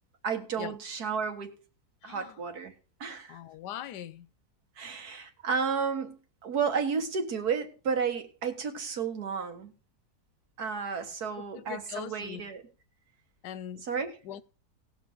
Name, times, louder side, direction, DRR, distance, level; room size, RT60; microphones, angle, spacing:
voice 1, 0.2-1.5 2.0-2.7 3.0-3.4 4.8-6.2 6.4-9.7 10.6-12.6 13.8-14.1, right 6 dB, 65° right, 2.0 m, -32 dB
voice 2, 2.0-2.4 3.3-4.3 11.4-12.5 13.4-13.9 14.2-14.4, left 11 dB, 85° left, 1.3 m, -41 dB
18.5 x 6.4 x 3.9 m
omnidirectional pair, 1.8 m